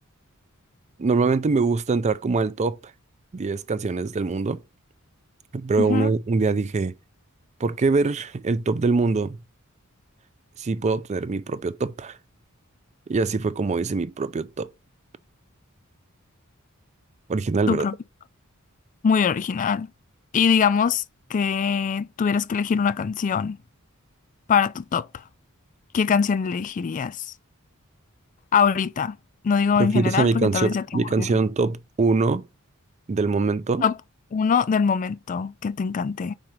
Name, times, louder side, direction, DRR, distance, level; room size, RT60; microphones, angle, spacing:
voice 1, 1.0-2.8 3.3-4.6 5.5-6.9 7.6-9.4 10.6-12.2 13.1-14.7 17.3-17.9 29.8-32.4 33.1-33.8, right 4 dB, 30° right, 0.4 m, -23 dB
voice 2, 5.8-6.1 17.7-18.0 19.0-19.9 20.3-21.0 21.3-23.6 24.5-25.2 25.9-27.3 28.5-29.2 29.4-31.3 33.8-33.9 34.3-36.3, left 6 dB, 35° left, 0.3 m, -23 dB
4.8 x 4.5 x 5.3 m
head